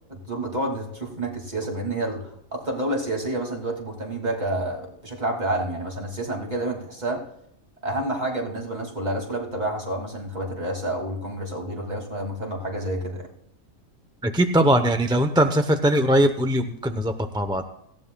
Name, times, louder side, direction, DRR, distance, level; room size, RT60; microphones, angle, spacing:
voice 1, 0.1-7.2 7.8-13.3, right 1 dB, 30° right, 1 dB, 2.6 m, -29 dB
voice 2, 14.2-17.6, right 1 dB, 5° right, 6 dB, 0.5 m, -21 dB
18.0 x 15.5 x 2.3 m, 0.76 s
omnidirectional pair, 1.4 m